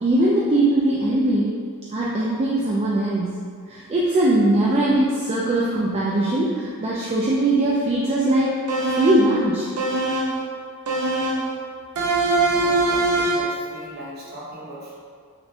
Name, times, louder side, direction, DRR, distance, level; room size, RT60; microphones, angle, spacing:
voice 1, 0.0-1.6 1.9-3.4 3.7-8.6 8.9-9.7, right 1 dB, 30° right, -5 dB, 0.3 m, -20 dB
sound 1, 8.7-9.3 9.8-10.4 10.9-11.5 12.0-13.6, right 2 dB, 85° right, 0.6 m, -22 dB
voice 2, 12.5-14.9, right 1 dB, 45° right, -6 dB, 0.9 m, -38 dB
5.8 x 2.1 x 2.6 m, 2.1 s
head